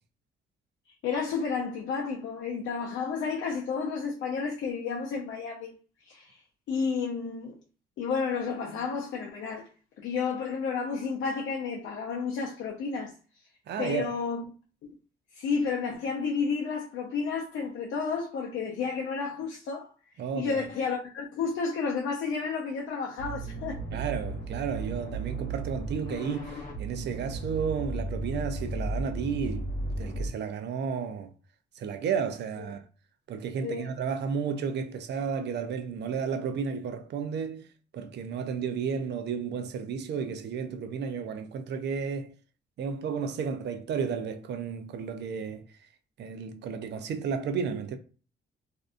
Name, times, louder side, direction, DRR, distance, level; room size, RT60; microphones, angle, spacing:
voice 1, 1.0-5.8 6.0-6.4 6.7-7.6 8.0-9.7 10.0-13.1 13.8-14.4 15.3-19.9 20.3-23.8 32.6-32.7 33.6-33.9, left 5 dB, 70° left, 0.5 m, -31 dB
voice 2, 13.7-14.1 20.2-20.6 23.9-29.7 30.0-31.3 31.8-32.9 33.3-37.7 37.9-42.3 42.8-45.6 46.2-48.0, right 6 dB, 60° right, 0.4 m, -32 dB
sound 1, 23.2-30.3, right 2 dB, 45° left, 0.8 m, -35 dB
2.6 x 2.3 x 2.5 m
cardioid pair, 90°, 20 cm